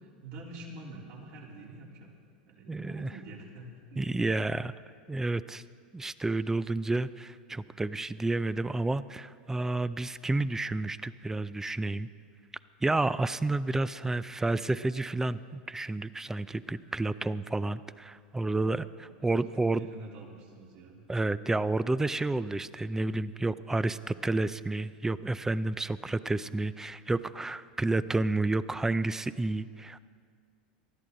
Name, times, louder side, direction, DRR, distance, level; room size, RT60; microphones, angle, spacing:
voice 1, 0.0-2.1 2.4-4.1 18.5-21.0, right 2 dB, 60° right, -3 dB, 3.4 m, -47 dB
voice 2, 2.7-3.1 4.0-4.7 5.1-5.6 5.9-12.1 12.8-19.8 21.1-30.0, right 2 dB, 10° right, 16 dB, 0.4 m, -30 dB
19.5 x 13.5 x 3.9 m, 2.1 s
hypercardioid pair, 100°, 5 cm